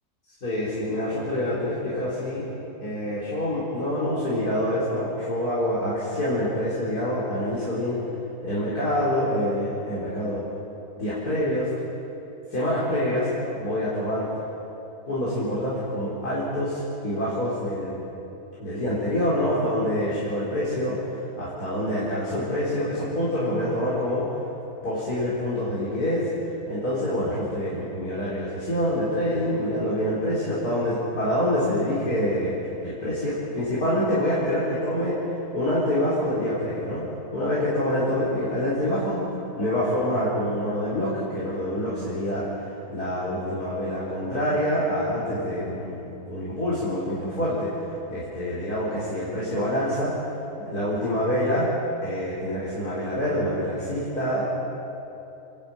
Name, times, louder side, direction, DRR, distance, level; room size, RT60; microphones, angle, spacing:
voice 1, 0.4-2.5 2.8-8.0 8.4-10.4 11.0-11.7 12.5-14.3 15.1-18.0 18.6-24.3 24.8-26.3 26.7-35.2 35.5-37.0 37.3-39.2 39.6-50.1 50.6-51.7 52.0-54.4, left 1 dB, 90° left, -9 dB, 4.7 m, -26 dB
28.0 x 11.5 x 8.8 m, 2.9 s
omnidirectional pair, 1.6 m